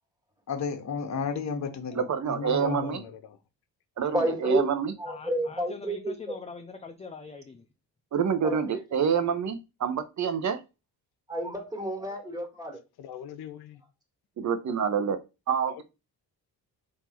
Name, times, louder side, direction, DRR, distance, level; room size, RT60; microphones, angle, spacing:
voice 1, 0.5-3.0, left 5 dB, 45° left, 1.1 m, -32 dB
voice 2, 2.0-3.0 4.0-4.9 8.1-10.6 14.4-15.2 15.5-15.8, right 7 dB, 45° right, 0.9 m, -27 dB
voice 3, 2.5-3.4 13.0-13.8 15.7-15.8, left 10 dB, 75° left, 0.7 m, -42 dB
voice 4, 4.1-4.7 5.0-6.4 8.4-8.6 11.3-12.8, right 1 dB, 10° right, 1.9 m, -30 dB
voice 5, 5.1-7.7, left 4 dB, 15° left, 0.5 m, -43 dB
3.8 x 2.8 x 4.4 m
cardioid pair, 85°, 38 cm